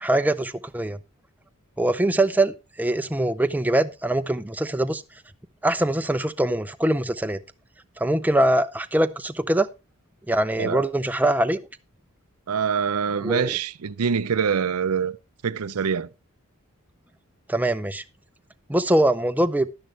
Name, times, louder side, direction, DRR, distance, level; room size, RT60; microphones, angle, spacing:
voice 1, 0.0-1.0 1.8-5.0 5.6-7.4 8.0-9.7 10.3-11.6 13.2-13.6 17.5-18.0 18.7-19.7, right 1 dB, 10° right, 0.5 m, -23 dB
voice 2, 12.5-15.1 15.4-16.1, right 6 dB, 90° right, 0.5 m, -24 dB
11.5 x 10.5 x 3.3 m
head